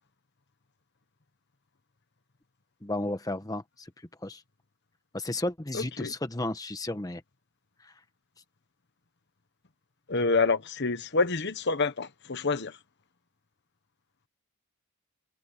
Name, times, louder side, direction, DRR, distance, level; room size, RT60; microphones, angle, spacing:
voice 1, 2.8-3.9 4.2-4.4 5.1-7.2 7.8-7.9, left 1 dB, 15° left, 1.1 m, -33 dB
voice 2, 5.7-6.1 10.1-12.8, left 4 dB, 50° left, 1.1 m, -27 dB
head